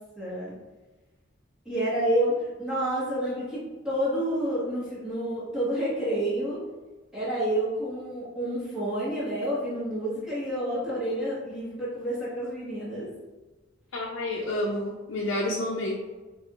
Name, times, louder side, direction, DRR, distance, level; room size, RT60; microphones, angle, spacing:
voice 1, 0.2-0.5 1.6-6.6 7.1-13.1, right 1 dB, 5° right, -13 dB, 1.4 m, -29 dB
voice 2, 13.9-15.9, left 1 dB, 80° left, -3 dB, 0.6 m, -29 dB
5.2 x 3.0 x 2.4 m, 1.2 s
head